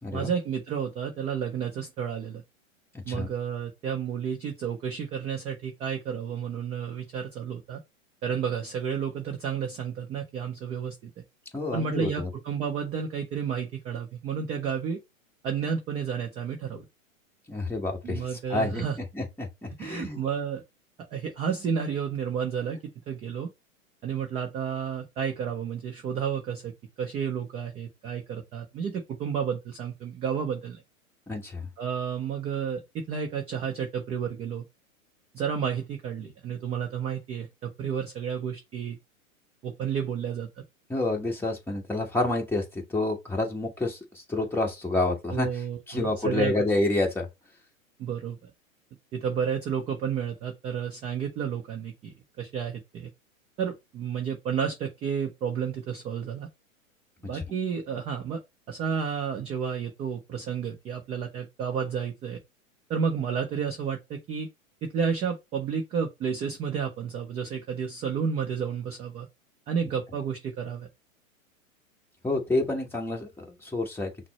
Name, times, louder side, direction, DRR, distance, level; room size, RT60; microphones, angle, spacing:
voice 1, 0.1-2.4 3.1-7.8 8.2-11.2 11.7-15.0 15.4-16.8 18.0-19.0 19.8-20.6 21.1-22.8 23.1-23.5 24.0-26.7 27.0-30.8 31.8-34.6 35.3-39.0 39.6-40.5 45.3-46.5 48.0-48.5 49.1-53.1 53.6-56.5 57.2-58.4 58.7-62.4 62.9-64.5 64.8-69.3 69.7-70.9, right 7 dB, 15° right, 0.4 m, -31 dB
voice 2, 2.9-3.3 11.5-12.3 17.5-18.8 19.1-20.3 31.3-31.7 40.9-45.5 45.9-47.3 57.3-57.4 72.2-74.1, left 2 dB, 5° left, 1.2 m, -29 dB
5.8 x 2.1 x 4.2 m
hypercardioid pair, 120°, 42 cm